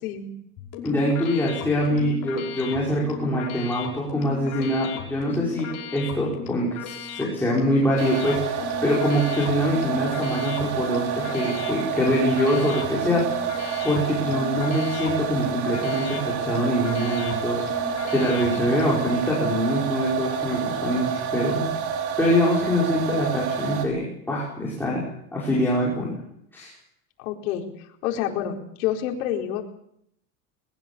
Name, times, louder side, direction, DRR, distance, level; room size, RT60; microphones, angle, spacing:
sound 1, 0.6-19.1, left 5 dB, 45° left, 5.6 m, -36 dB
voice 1, 0.8-13.5 13.8-21.7 22.2-25.0 25.3-26.1 26.5-26.7, equal, 5° left, -5 dB, 5.4 m, -24 dB
sound 2, 8.0-23.8, right 7 dB, 90° right, 5.6 m, -28 dB
voice 2, 18.5-18.8 27.2-27.6 28.0-29.6, left 10 dB, 80° left, 2 dB, 4.6 m, -28 dB
22.0 x 22.0 x 7.0 m, 0.74 s
cardioid pair, 170°, 42 cm